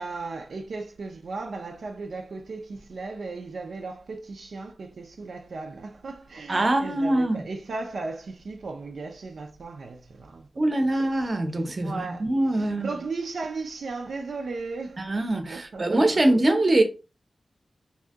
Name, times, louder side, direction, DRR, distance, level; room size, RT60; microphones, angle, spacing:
voice 1, 0.0-10.5 10.8-10.9 11.8-12.3 12.5-15.1 15.5-16.2, right 3 dB, 85° right, 0.4 m, -36 dB
voice 2, 6.5-7.4 10.6-12.9 15.0-16.8, right 1 dB, 40° right, 0.7 m, -23 dB
2.7 x 2.6 x 3.5 m
wide cardioid pair, 95°, 0 cm